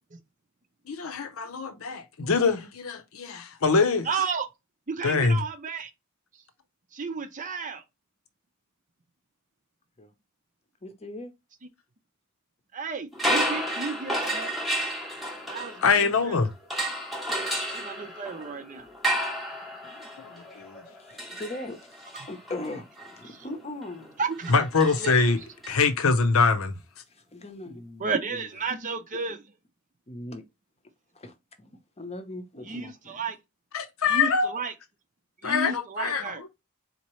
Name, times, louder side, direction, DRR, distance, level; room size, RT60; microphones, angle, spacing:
voice 1, 0.9-4.1 5.0-5.4 15.8-16.5 20.2-20.3 20.6-20.8 24.5-25.4 25.7-26.7 33.7-34.5 35.4-36.2, left 4 dB, 70° left, 0.7 m, -24 dB
voice 2, 4.0-4.5 4.9-5.9 6.9-7.8 12.7-14.5 15.5-16.5 17.7-18.9 23.3-23.4 24.2-24.5 25.0-25.1 28.0-29.4 32.6-33.4 34.1-34.7 35.4-36.4, right 5 dB, 35° right, 0.6 m, -32 dB
voice 3, 10.8-11.3 19.8-20.1 21.0-24.1 27.1-28.5 30.1-30.4 31.1-33.2, left 2 dB, 30° left, 0.8 m, -40 dB
sound 1, 13.1-16.2 16.7-25.7, right 1 dB, ahead, 0.9 m, -32 dB
4.1 x 2.9 x 3.1 m
head